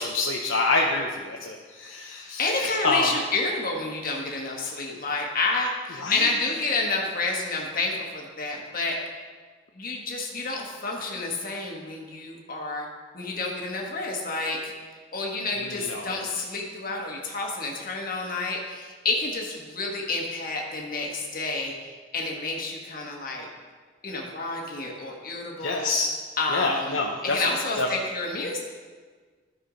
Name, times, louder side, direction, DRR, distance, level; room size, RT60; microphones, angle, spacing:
voice 1, 0.0-3.2 6.0-6.3 15.6-16.1 25.6-26.1 26.5-27.4 27.8-27.9, left 3 dB, 85° left, 0 dB, 0.8 m, -27 dB
voice 2, 2.4-9.0 9.7-12.9 13.1-14.7 15.1-21.7 22.1-23.5 24.0-25.9 26.4-27.0 27.2-28.6, left 3 dB, 50° left, 0 dB, 1.5 m, -29 dB
13.0 x 4.8 x 5.1 m, 1.5 s
head